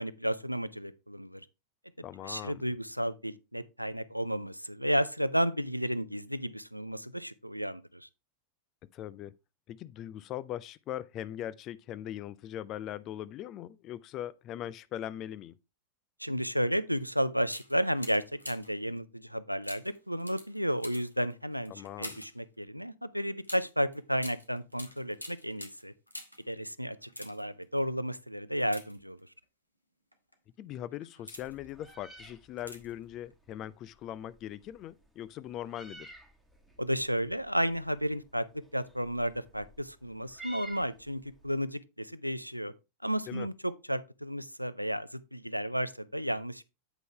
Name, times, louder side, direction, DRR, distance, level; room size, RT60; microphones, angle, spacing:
voice 1, 0.0-1.5 2.2-8.1 16.2-21.7 22.0-25.9 26.5-29.2 36.8-42.7 43.0-46.6, equal, 90° right, 0.4 m, -32 dB
voice 2, 2.0-2.6 8.9-9.3 9.7-15.6 21.7-22.3 30.6-36.2 43.3-43.5, left 12 dB, 35° left, 0.4 m, -40 dB
sound 1, 16.9-17.0 17.4-18.8 19.6-22.4 23.4-26.5 27.0-27.6 28.6-29.4 30.1-30.3 30.9-31.7 32.6-33.0 33.3-33.4, left 1 dB, 90° left, 1.1 m, -46 dB
Meow, 31.4-41.5, right 2 dB, ahead, 1.3 m, -54 dB
8.2 x 5.4 x 3.3 m
figure-of-eight pair, 90°, 0 cm